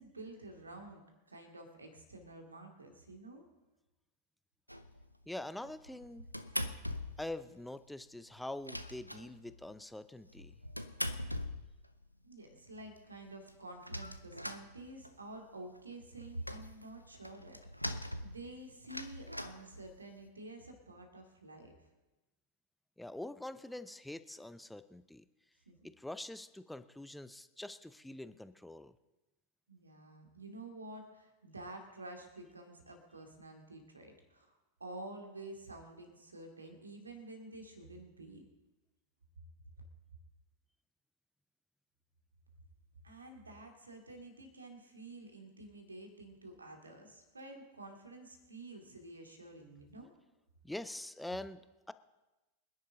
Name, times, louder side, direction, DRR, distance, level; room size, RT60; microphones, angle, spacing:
voice 1, 0.0-3.4 12.2-21.7 25.7-25.9 29.7-38.4 43.0-50.1, right 2 dB, 80° right, 3 dB, 2.4 m, -50 dB
sound 1, 4.7-5.1 5.6-7.4 7.6-7.7 8.0-8.1 8.4-9.7 10.3-12.1 12.6-12.7 13.0-13.1 13.2-15.3 15.7-20.3, equal, 90° left, 0.6 m, -42 dB
voice 2, 5.3-6.3 7.2-10.5 23.0-25.3 25.8-28.9 50.6-51.9, left 1 dB, 5° left, 13 dB, 0.6 m, -44 dB
25.0 x 10.5 x 3.9 m, 1.1 s
figure-of-eight pair, 90°, 0 cm